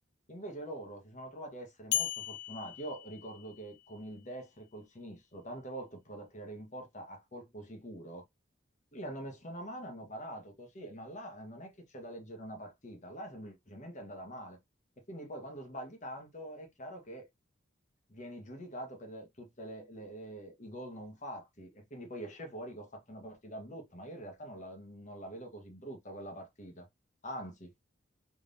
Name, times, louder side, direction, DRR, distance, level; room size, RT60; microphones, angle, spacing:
voice 1, 0.3-8.2 8.9-14.6 15.1-17.3 18.1-26.9 27.2-27.7, right 1 dB, 40° left, 1.2 m, -44 dB
sound 1, 1.9-4.0, left 12 dB, 60° left, 0.3 m, -37 dB
3.4 x 3.4 x 2.6 m
head